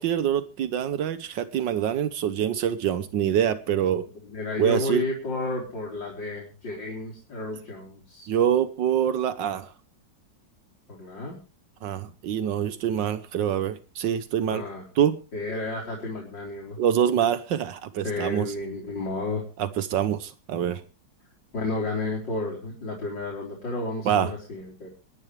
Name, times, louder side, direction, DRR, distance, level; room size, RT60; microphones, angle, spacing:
voice 1, 0.0-4.0 4.6-5.1 8.3-9.7 11.8-14.6 15.0-15.2 16.8-18.5 19.6-20.8 24.0-24.3, right 9 dB, 80° right, 13 dB, 1.6 m, -25 dB
voice 2, 4.2-8.3 10.9-11.4 14.5-14.8 15.3-16.8 18.0-19.4 21.5-24.9, left 2 dB, 85° left, -3 dB, 4.7 m, -32 dB
26.0 x 10.5 x 3.2 m, 0.32 s
omnidirectional pair, 1.9 m